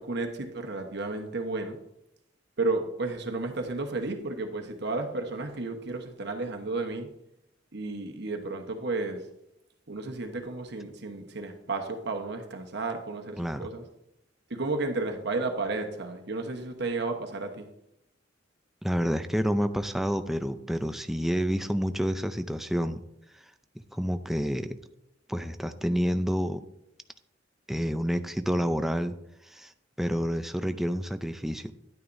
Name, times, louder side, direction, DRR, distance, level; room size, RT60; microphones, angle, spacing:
voice 1, 0.0-1.8 2.6-7.1 7.7-9.3 9.9-13.8 14.5-17.7, right 3 dB, 60° right, 4 dB, 1.1 m, -32 dB
voice 2, 13.4-13.7 18.8-23.0 23.9-24.8 25.3-26.6 27.7-29.1 29.5-29.7 30.0-31.7, equal, ahead, 9 dB, 0.4 m, -28 dB
11.0 x 9.9 x 2.6 m, 0.82 s
head